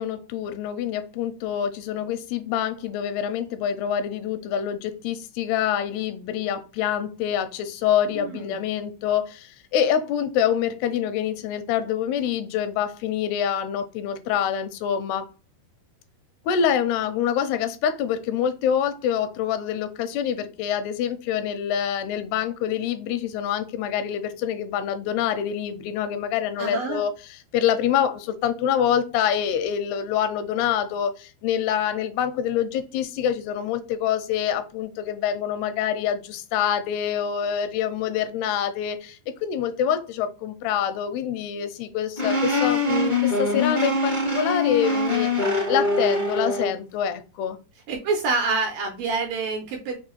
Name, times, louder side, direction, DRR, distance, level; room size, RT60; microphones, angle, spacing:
voice 1, 0.0-15.3 16.5-27.1 27.5-47.6, left 9 dB, 85° left, 2.6 m, -26 dB
voice 2, 8.1-8.6 26.6-27.0 47.9-50.0, right 4 dB, 75° right, 2.2 m, -27 dB
sound 1, 42.2-46.7, left 2 dB, 50° right, 0.5 m, -23 dB
6.2 x 2.3 x 3.0 m
omnidirectional pair, 4.7 m